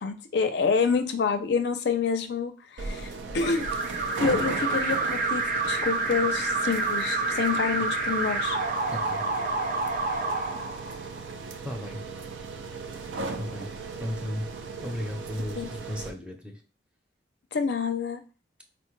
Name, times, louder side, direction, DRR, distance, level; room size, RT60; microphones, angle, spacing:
voice 1, 0.0-3.7 4.2-8.6 15.6-15.7 17.5-18.2, left 5 dB, 65° left, 7 dB, 0.4 m, -27 dB
sound 1, 2.8-16.1, right 4 dB, 85° right, 0.5 m, -37 dB
Alarm, 3.4-11.3, right 3 dB, 45° right, 0.7 m, -28 dB
voice 2, 8.9-9.2 11.0-11.1 11.6-12.0 13.4-13.7 14.0-14.5 14.8-16.6, equal, 5° right, 1 dB, 0.6 m, -35 dB
4.2 x 2.1 x 3.1 m, 0.34 s
head